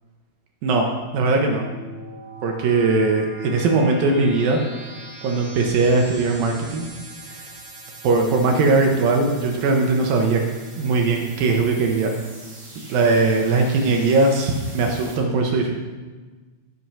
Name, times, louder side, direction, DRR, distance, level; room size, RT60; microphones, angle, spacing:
sound 1, 1.1-15.2, right 2 dB, 50° right, 0.9 m, -42 dB
voice 1, 1.1-1.7 2.4-4.6 5.2-6.9 7.3-7.4 8.0-10.4 10.8-12.2 12.9-15.7, right 3 dB, 75° right, 2 dB, 2.2 m, -19 dB
14.0 x 6.1 x 5.7 m, 1.3 s
omnidirectional pair, 5.3 m